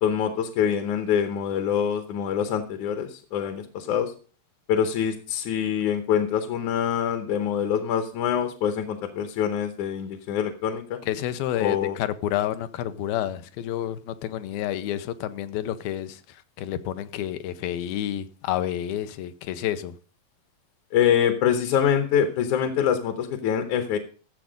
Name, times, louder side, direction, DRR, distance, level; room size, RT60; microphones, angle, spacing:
voice 1, 0.0-4.1 4.7-11.0 11.6-12.0 20.9-24.0, left 8 dB, 70° left, 2.1 m, -25 dB
voice 2, 11.0-20.0, left 12 dB, 90° left, 2.6 m, -29 dB
14.0 x 7.2 x 5.1 m
omnidirectional pair, 4.1 m